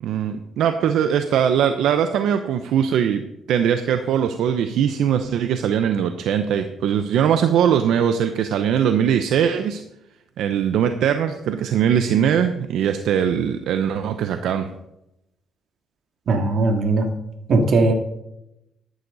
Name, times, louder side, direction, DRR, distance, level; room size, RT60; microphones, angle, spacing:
voice 1, 0.0-3.2 3.5-9.8 10.4-14.7, right 8 dB, 80° right, 8 dB, 0.8 m, -21 dB
voice 2, 16.3-17.1 17.5-17.9, right 3 dB, 60° right, 4 dB, 2.6 m, -18 dB
14.0 x 11.5 x 4.1 m, 0.87 s
cardioid pair, 90°, 0 cm